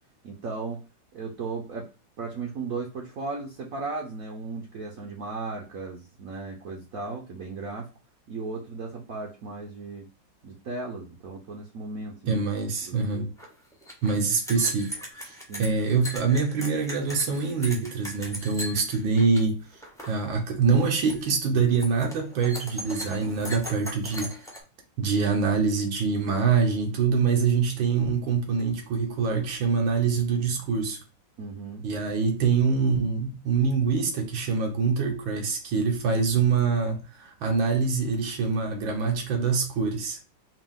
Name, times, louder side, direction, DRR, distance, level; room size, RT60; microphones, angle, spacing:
voice 1, 0.2-1.9 2.2-7.9 8.3-10.1 10.4-12.4 12.8-13.3 15.5-15.7 31.4-31.9, right 3 dB, 60° right, 1.0 m, -36 dB
voice 2, 12.3-13.3 14.0-19.6 20.1-24.3 25.0-31.0 31.8-40.2, right 5 dB, 80° right, 1.8 m, -25 dB
sound 1, 13.4-13.5 13.7-19.5 19.7-20.2 20.5-20.8 21.1-21.4 21.7-24.6, equal, 5° left, 0.6 m, -38 dB
5.0 x 2.5 x 3.6 m
omnidirectional pair, 2.1 m